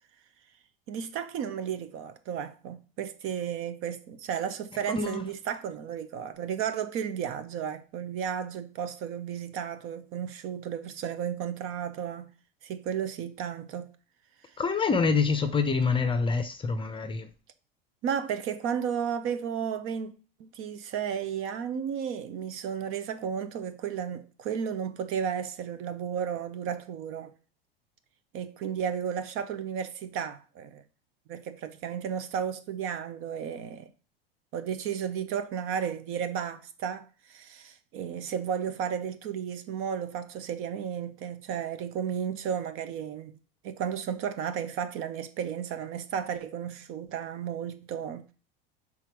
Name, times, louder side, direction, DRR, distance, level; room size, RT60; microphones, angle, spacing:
voice 1, 0.9-12.3 12.6-13.9 18.0-20.1 20.4-27.3 28.3-30.8 31.3-33.9 34.5-43.4 43.6-48.3, right 8 dB, 45° right, 0.8 m, -33 dB
voice 2, 4.9-5.2 14.6-17.3, left 4 dB, 15° left, 0.6 m, -26 dB
5.8 x 3.7 x 4.5 m
hypercardioid pair, 90°, 30 cm